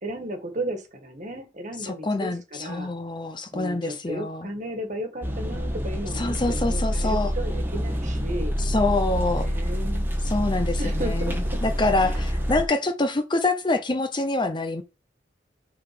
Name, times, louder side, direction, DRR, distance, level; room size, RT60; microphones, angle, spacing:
voice 1, 0.0-2.9 3.5-8.6 9.4-10.1 10.8-11.6 12.0-12.3, right 1 dB, 45° right, 1.8 m, -34 dB
voice 2, 1.8-4.5 6.2-7.3 8.6-9.5 10.3-11.3 11.6-14.8, left 2 dB, 25° left, 0.7 m, -26 dB
sound 1, 5.2-12.6, equal, 10° right, 1.5 m, -27 dB
6.3 x 4.0 x 5.9 m
head